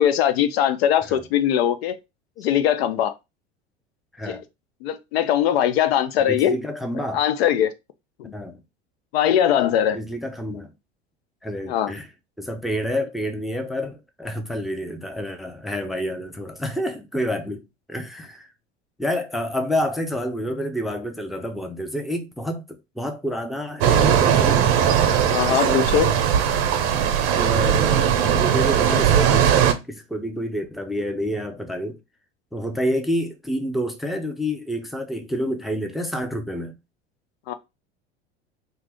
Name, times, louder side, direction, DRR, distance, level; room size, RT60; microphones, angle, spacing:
voice 1, 0.0-2.0 2.4-3.1 4.3-4.4 4.8-6.6 7.1-7.7 8.2-8.3 9.1-10.0 11.7-11.9 25.3-26.1 37.5-37.6, left 10 dB, 70° left, 0.5 m, -21 dB
voice 2, 6.2-7.2 8.3-8.6 9.9-10.7 11.4-12.1 12.4-18.5 19.0-24.6 25.5-25.9 27.3-32.0 32.5-36.7, equal, ahead, 0.5 m, -28 dB
sound 1, 23.8-29.7, right 8 dB, 65° right, 0.7 m, -19 dB
2.7 x 2.4 x 3.3 m
hypercardioid pair, 75°, 32 cm